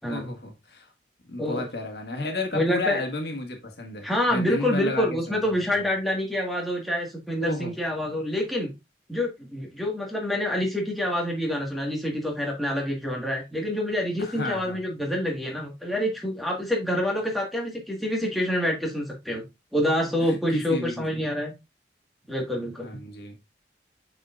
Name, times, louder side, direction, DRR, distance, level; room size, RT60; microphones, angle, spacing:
voice 1, 0.1-0.9 1.3-5.8 7.4-7.7 14.2-14.8 20.2-21.2 22.8-23.4, left 2 dB, 65° left, 1.6 m, -33 dB
voice 2, 2.5-3.0 4.0-8.7 9.1-19.4 19.7-21.5 22.3-22.9, left 1 dB, ahead, 1.6 m, -27 dB
8.1 x 4.9 x 2.4 m
head